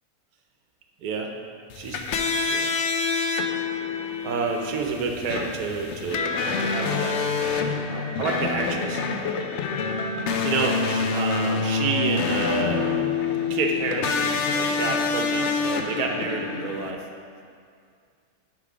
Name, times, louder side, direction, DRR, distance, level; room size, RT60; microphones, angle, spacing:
voice 1, 1.0-1.3 1.7-2.0 2.5-2.7 4.2-9.6 10.4-12.9 13.5-17.0, right 4 dB, 90° right, 3 dB, 1.2 m, -29 dB
sound 1, 1.7-16.9, left 5 dB, 65° left, 0.8 m, -26 dB
9.9 x 3.7 x 4.9 m, 2.2 s
omnidirectional pair, 1.6 m